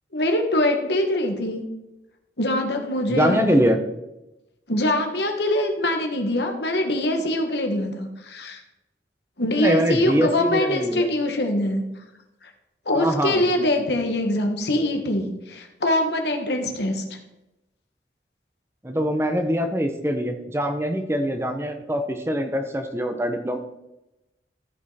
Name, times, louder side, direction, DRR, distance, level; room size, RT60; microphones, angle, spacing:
voice 1, 0.1-1.6 2.4-3.6 4.7-8.6 9.4-11.8 12.8-17.0, left 1 dB, 70° left, 4 dB, 1.6 m, -23 dB
voice 2, 3.1-3.8 9.5-11.1 12.9-13.5 18.8-23.6, equal, 15° right, 6 dB, 0.7 m, -23 dB
14.0 x 5.5 x 4.2 m, 0.95 s
head